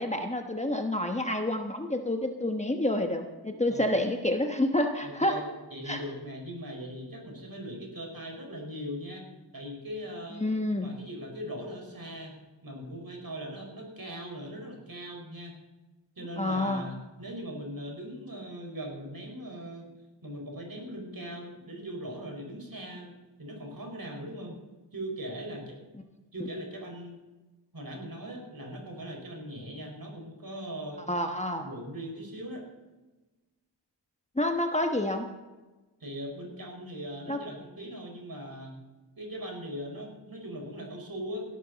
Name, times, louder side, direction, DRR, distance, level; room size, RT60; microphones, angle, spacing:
voice 1, 0.0-5.4 5.9-6.0 10.4-10.9 16.4-16.9 26.4-26.5 31.1-31.7 34.4-35.3 37.3-37.4, left 1 dB, 15° left, 4 dB, 1.1 m, -28 dB
voice 2, 5.0-9.2 9.5-10.4 10.8-12.3 12.6-15.6 16.2-19.9 20.2-24.6 24.9-25.8 26.3-27.2 27.7-31.0 31.6-32.7 36.0-38.8 39.2-41.4, equal, 55° right, 1 dB, 4.9 m, -40 dB
17.5 x 12.0 x 4.0 m, 1.1 s
wide cardioid pair, 70°, 43 cm